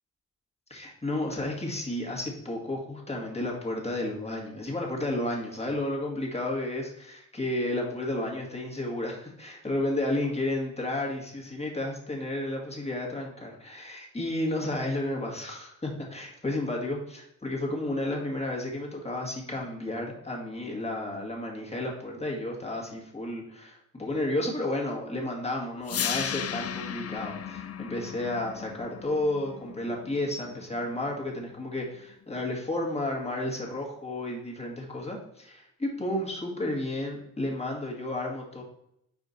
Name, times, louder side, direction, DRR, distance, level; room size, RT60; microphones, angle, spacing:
voice 1, 0.7-38.6, left 1 dB, 20° left, -1 dB, 1.8 m, -32 dB
sound 1, 25.9-31.9, left 8 dB, 50° left, 0.4 m, -36 dB
5.1 x 4.5 x 4.1 m, 0.77 s
cardioid pair, 80°, 32 cm